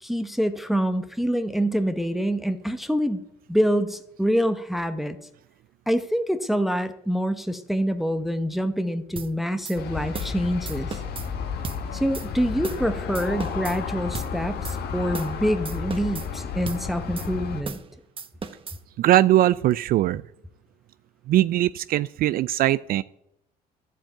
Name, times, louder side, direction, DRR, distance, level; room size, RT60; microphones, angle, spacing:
voice 1, 0.0-3.2 3.5-5.2 5.9-11.0 11.9-17.8, equal, ahead, 9 dB, 0.8 m, -26 dB
sound 1, 9.2-9.3 9.6-9.8 10.1-10.4 10.7-11.3 11.6-11.8 12.1-12.3 12.6-12.9 13.1-13.8 14.1-14.3 14.6-14.8 15.1-15.4 15.6-16.3 16.7-16.8 17.2-17.3 17.6-17.9 18.2-18.8, right 5 dB, 30° right, 1.2 m, -36 dB
Aircraft, 9.8-17.6, left 6 dB, 70° left, 1.7 m, -32 dB
voice 2, 19.0-20.2 21.3-23.0, right 14 dB, 60° right, 16 dB, 0.4 m, -20 dB
11.5 x 7.3 x 8.9 m, 0.81 s
cardioid pair, 110°, 17 cm